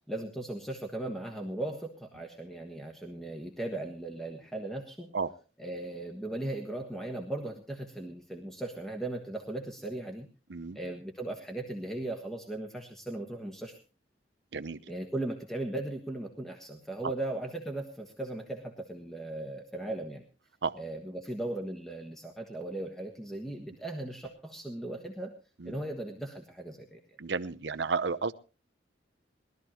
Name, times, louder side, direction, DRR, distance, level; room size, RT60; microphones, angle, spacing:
voice 1, 0.1-5.1 5.6-10.3 10.7-13.8 14.9-20.2 20.8-25.3 25.6-27.0, right 1 dB, ahead, 2 dB, 1.4 m, -37 dB
voice 2, 27.2-28.3, right 4 dB, 70° right, 10 dB, 0.8 m, -32 dB
21.0 x 13.0 x 3.0 m, 0.34 s
head